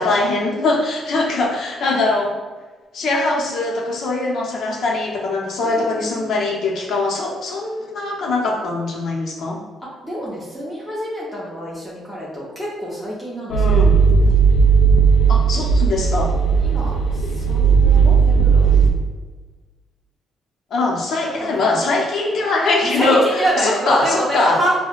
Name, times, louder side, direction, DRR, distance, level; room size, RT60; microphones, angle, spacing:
voice 1, 0.0-2.3 2.9-9.6 13.5-14.0 15.3-16.3 18.0-18.1 20.7-23.2 23.6-24.6, left 2 dB, 65° left, -2 dB, 0.8 m, -21 dB
voice 2, 5.6-6.4 9.8-13.8 16.6-18.8 21.4-21.9 22.8-24.8, right 1 dB, ahead, -7 dB, 0.8 m, -27 dB
sound 1, 13.5-18.9, right 5 dB, 80° left, 0.4 m, -15 dB
4.8 x 2.2 x 2.4 m, 1.3 s
cardioid pair, 90°, 0 cm